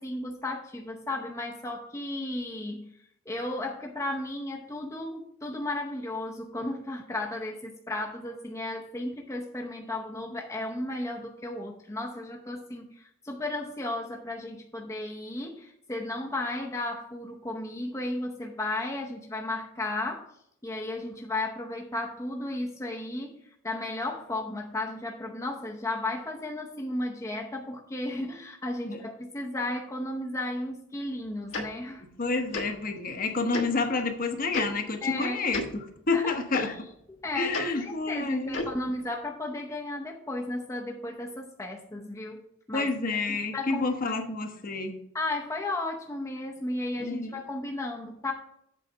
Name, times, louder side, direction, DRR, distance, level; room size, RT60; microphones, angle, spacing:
voice 1, 0.0-2.9 3.3-20.3 20.6-32.0 35.0-35.4 36.1-36.7 37.2-42.9 43.5-44.1 45.1-48.3, left 2 dB, 15° left, 0 dB, 0.7 m, -34 dB
Tick-tock, 31.5-31.6 32.5-32.7 33.5-33.7 34.5-34.6 35.5-35.7 36.5-36.6 37.5-37.6 38.5-38.7, left 3 dB, 70° left, 1.4 m, -31 dB
voice 2, 32.2-36.7 37.3-38.6 42.7-45.0 47.0-47.4, left 3 dB, 45° left, 5 dB, 1.0 m, -29 dB
7.8 x 4.0 x 6.6 m, 0.73 s
head